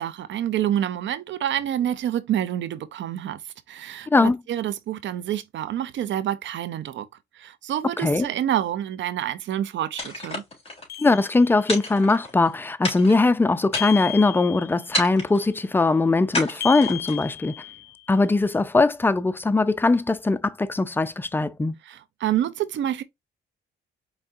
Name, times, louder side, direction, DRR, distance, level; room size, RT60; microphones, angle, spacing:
voice 1, 0.0-7.1 7.3-10.4 21.8-23.0, right 11 dB, 70° right, 0.7 m, -28 dB
voice 2, 4.1-4.4 8.0-8.3 11.0-17.6 18.1-21.7, left 3 dB, 10° left, 0.4 m, -21 dB
sound 1, 10.0-10.9 11.7-12.5 12.8-13.3 13.7-14.2 14.9-15.5 16.3-17.3, left 1 dB, 30° left, 3.2 m, -30 dB
sound 2, 10.9-11.9 13.7-15.0 16.6-18.1, left 16 dB, 55° left, 0.6 m, -35 dB
4.9 x 3.3 x 2.6 m
cardioid pair, 90°, 20 cm